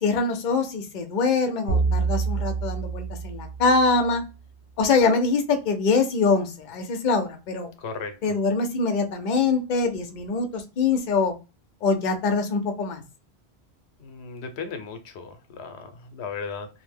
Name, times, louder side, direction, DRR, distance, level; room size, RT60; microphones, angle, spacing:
voice 1, 0.0-4.2 4.8-7.7 8.2-11.3 11.8-13.0, left 4 dB, 55° left, 5 dB, 0.6 m, -24 dB
sound 1, 1.7-4.1, right 4 dB, 60° right, 0.7 m, -27 dB
voice 2, 7.8-8.4 14.0-16.7, left 5 dB, 85° left, 8 dB, 0.9 m, -36 dB
2.6 x 2.1 x 3.3 m, 0.29 s
omnidirectional pair, 1.1 m